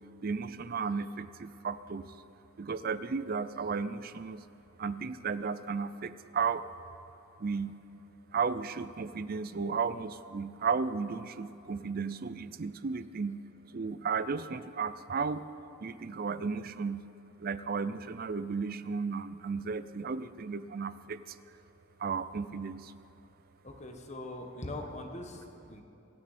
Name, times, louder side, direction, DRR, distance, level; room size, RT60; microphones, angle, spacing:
voice 1, 0.0-2.1 2.6-4.4 4.8-6.6 7.4-7.8 8.3-13.4 13.7-15.4 15.8-17.1 17.4-21.4 22.0-22.9, right 5 dB, 45° right, 14 dB, 0.5 m, -34 dB
voice 2, 23.6-25.8, left 1 dB, 35° left, 4 dB, 1.4 m, -41 dB
26.5 x 9.8 x 4.3 m, 2.9 s
head